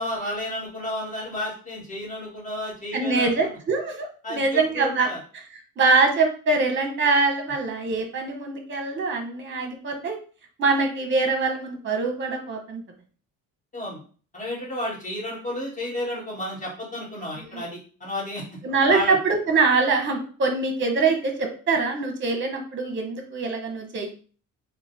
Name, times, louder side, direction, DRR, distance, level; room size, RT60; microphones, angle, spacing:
voice 1, 0.0-3.5 4.2-5.2 13.7-14.0 14.3-18.4 18.9-19.1, left 1 dB, 25° left, -5 dB, 1.7 m, -32 dB
voice 2, 2.9-5.1 5.3-5.4 5.8-10.2 10.6-12.8 17.5-17.6 18.6-24.1, right 4 dB, 35° right, 3 dB, 1.0 m, -23 dB
3.8 x 2.3 x 4.0 m, 0.40 s
cardioid pair, 160°, 33 cm